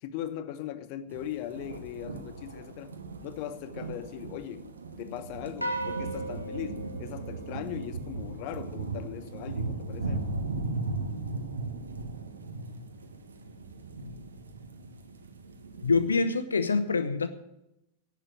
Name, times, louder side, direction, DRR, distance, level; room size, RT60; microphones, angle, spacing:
voice 1, 0.0-2.9 3.2-4.7 5.0-10.2, left 11 dB, 45° left, 0.9 m, -39 dB
sound 1, 1.1-16.1, right 3 dB, 75° right, 1.5 m, -37 dB
sound 2, 5.6-8.1, right 2 dB, 90° right, 1.6 m, -37 dB
voice 2, 15.8-17.3, left 4 dB, 75° left, 0.8 m, -25 dB
11.0 x 8.5 x 9.2 m
figure-of-eight pair, 90°, 0 cm